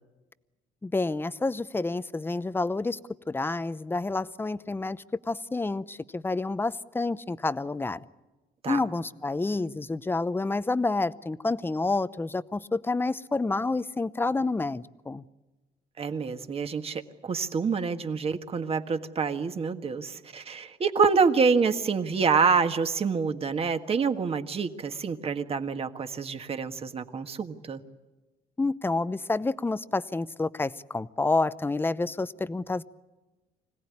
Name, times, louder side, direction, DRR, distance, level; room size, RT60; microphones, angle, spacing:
voice 1, 0.8-3.0 3.3-8.0 8.7-15.2 28.6-32.8, left 3 dB, 15° left, 15 dB, 0.7 m, -29 dB
voice 2, 16.0-27.8, right 5 dB, 35° right, 8 dB, 1.6 m, -27 dB
25.5 x 17.5 x 9.7 m, 1.2 s
cardioid pair, 110°, 17 cm